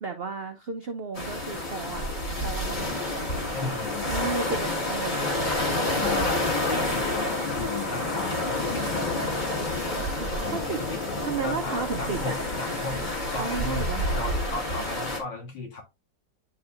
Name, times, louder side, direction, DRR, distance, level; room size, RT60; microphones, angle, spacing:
voice 1, 0.0-2.0 2.4-3.3 4.1-5.6 10.5-10.8 11.2-12.4 13.4-14.1, right 4 dB, 80° right, 0.5 m, -33 dB
sound 1, 1.1-15.2, left 1 dB, 25° left, 1.6 m, -29 dB
voice 2, 3.5-4.1 5.9-9.2 10.4-15.8, left 3 dB, 75° left, 2.7 m, -36 dB
9.7 x 4.3 x 2.4 m
omnidirectional pair, 2.0 m